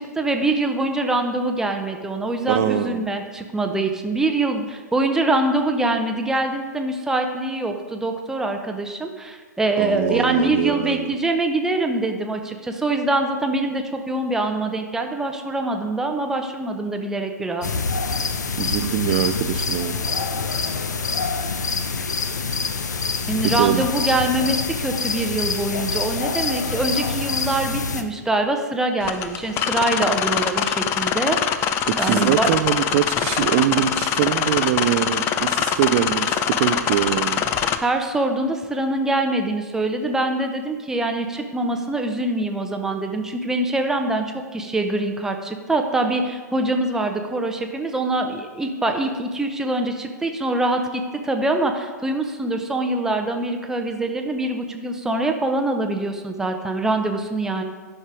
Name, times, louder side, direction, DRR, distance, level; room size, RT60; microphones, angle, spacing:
voice 1, 0.0-17.7 23.3-31.4 32.0-32.5 37.8-57.6, right 2 dB, 5° right, 4 dB, 0.7 m, -24 dB
voice 2, 2.5-3.0 9.8-11.1 18.6-20.0 23.6-23.9 32.0-37.5, right 11 dB, 40° right, 8 dB, 0.5 m, -23 dB
sound 1, 17.6-28.0, left 4 dB, 70° left, 0.8 m, -26 dB
sound 2, 29.0-37.8, left 9 dB, 25° left, 0.4 m, -23 dB
11.0 x 5.4 x 4.7 m, 1.4 s
figure-of-eight pair, 110°, 10 cm